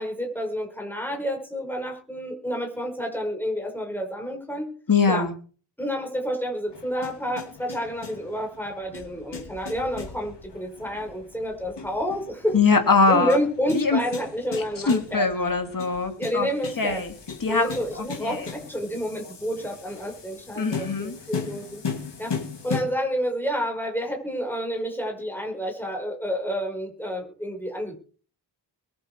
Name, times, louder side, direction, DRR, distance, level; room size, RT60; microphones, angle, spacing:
voice 1, 0.0-4.7 5.1-5.3 5.8-12.6 13.1-15.3 16.2-17.0 17.5-21.8 22.2-22.4 22.6-28.0, equal, 5° left, 1 dB, 5.2 m, -29 dB
voice 2, 4.9-5.3 12.5-13.4 13.7-14.0 14.9-16.5 16.8-17.1 17.4-17.7 18.0-18.4 20.6-21.2, left 4 dB, 50° left, 5 dB, 2.8 m, -22 dB
sound 1, 6.7-22.8, left 5 dB, 70° left, 2.9 m, -38 dB
22.5 x 7.9 x 4.7 m, 0.42 s
wide cardioid pair, 110°, 44 cm